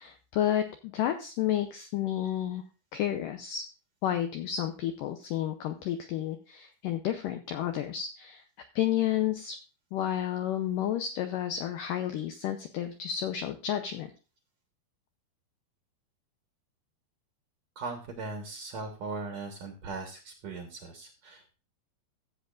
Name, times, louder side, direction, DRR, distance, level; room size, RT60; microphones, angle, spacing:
voice 1, 0.0-2.6 2.9-3.6 4.0-8.4 8.8-9.6 9.9-14.1, left 11 dB, 80° left, 6 dB, 1.9 m, -31 dB
voice 2, 17.8-21.5, right 3 dB, 60° right, 4 dB, 2.0 m, -39 dB
15.0 x 7.9 x 2.5 m, 0.33 s
omnidirectional pair, 4.7 m